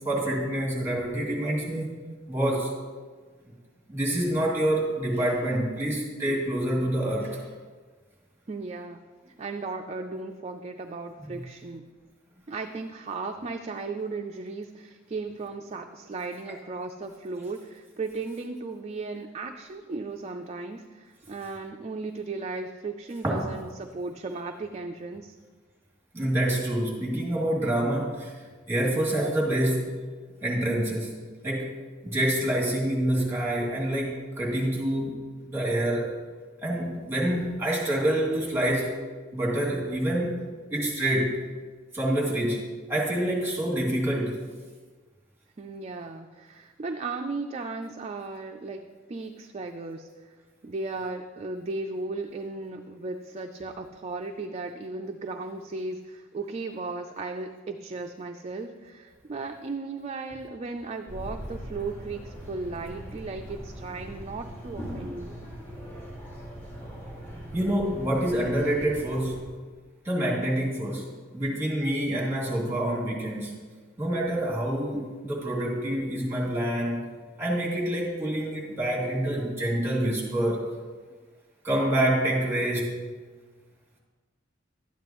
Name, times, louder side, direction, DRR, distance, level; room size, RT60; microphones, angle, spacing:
voice 1, 0.0-1.9 2.3-2.7 3.9-7.4 11.3-11.4 23.2-23.5 26.1-28.3 28.7-30.0 30.4-31.1 31.4-31.7 32.0-35.1 35.5-36.1 36.6-38.9 39.3-40.4 40.7-41.4 41.9-44.4 67.5-69.5 70.0-71.1 71.3-73.6 74.0-77.0 77.4-80.6 81.6-83.0, right 1 dB, 15° right, -4 dB, 2.7 m, -27 dB
voice 2, 8.5-9.0 9.4-11.9 12.5-25.3 45.6-48.8 49.1-50.1 50.6-65.3, right 3 dB, 35° right, 4 dB, 0.4 m, -36 dB
sound 1, 61.1-69.4, equal, 10° left, 2.1 m, -40 dB
12.0 x 9.3 x 3.0 m, 1.4 s
head